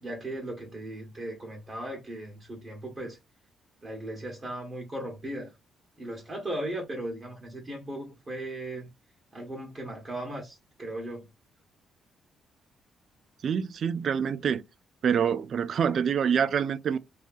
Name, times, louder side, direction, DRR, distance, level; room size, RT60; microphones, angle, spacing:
voice 1, 0.0-3.2 3.8-5.5 6.0-8.9 9.3-11.2, right 1 dB, 30° right, 0.8 m, -37 dB
voice 2, 13.4-14.6 15.0-17.0, right 7 dB, 55° right, 0.3 m, -26 dB
2.7 x 2.3 x 2.3 m
cardioid pair, 90°, 0 cm